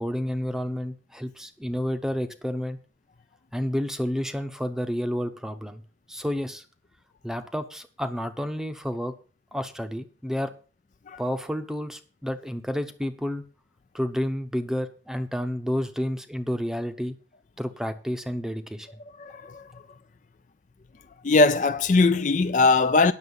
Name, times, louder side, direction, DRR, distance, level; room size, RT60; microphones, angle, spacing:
voice 1, 0.0-2.8 3.5-5.8 6.1-6.6 7.2-9.1 9.5-10.5 11.2-13.4 13.9-17.2 17.6-19.0, equal, 5° right, 0.8 m, -30 dB
voice 2, 19.2-19.7 21.2-23.1, left 3 dB, 40° left, 0.4 m, -20 dB
9.7 x 6.7 x 7.0 m
head